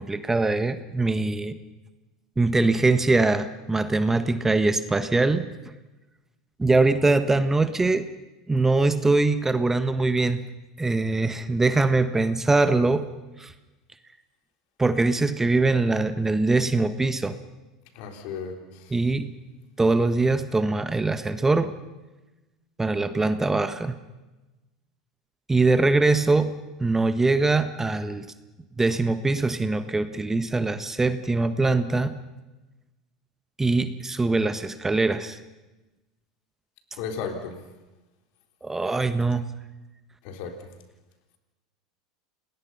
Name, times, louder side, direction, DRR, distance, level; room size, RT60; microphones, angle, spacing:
voice 1, 0.0-1.6 2.4-5.4 6.6-8.0 8.5-10.4 10.8-13.1 13.4-13.5 14.8-17.3 18.9-19.3 19.8-21.7 22.8-23.9 25.5-26.5 26.8-28.2 28.8-32.2 33.6-35.4 38.6-39.4, right 3 dB, 15° right, 11 dB, 1.4 m, -22 dB
voice 2, 18.0-18.9 37.0-37.5 40.2-40.5, left 6 dB, 60° left, 5 dB, 3.8 m, -34 dB
29.0 x 20.0 x 5.6 m, 1.1 s
hypercardioid pair, 80°, 3 cm